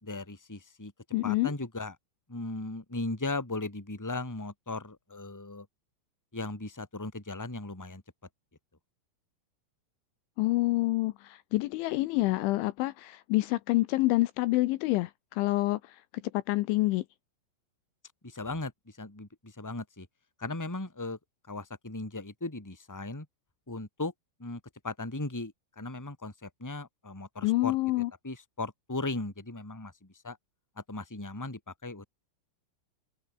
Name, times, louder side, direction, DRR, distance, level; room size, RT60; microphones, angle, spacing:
voice 1, 0.0-0.9 1.2-1.9 2.3-5.7 6.3-8.0 18.2-20.1 20.4-21.2 21.5-23.3 23.7-24.1 24.4-30.4 30.9-32.0, left 2 dB, 5° left, 2.7 m, -37 dB
voice 2, 1.1-1.5 10.4-15.8 16.3-17.0 27.4-28.1, left 19 dB, 85° left, 2.9 m, -27 dB
open air
omnidirectional pair, 6.0 m